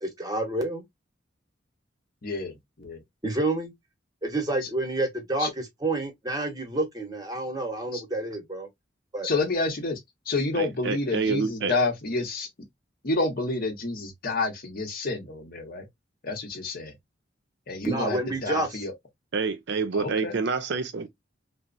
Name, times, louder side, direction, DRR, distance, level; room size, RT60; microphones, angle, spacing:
voice 1, 0.0-0.8 3.2-3.7 4.2-8.7 9.1-9.3 17.8-18.9, right 2 dB, 20° right, 0.8 m, -29 dB
voice 2, 9.2-10.0 10.3-12.5 13.0-15.8 16.2-16.9 17.7-18.9 20.0-20.3, left 3 dB, 50° left, 0.8 m, -29 dB
voice 3, 10.5-11.7 19.3-21.1, right 4 dB, 65° right, 0.5 m, -28 dB
3.0 x 2.0 x 2.4 m
head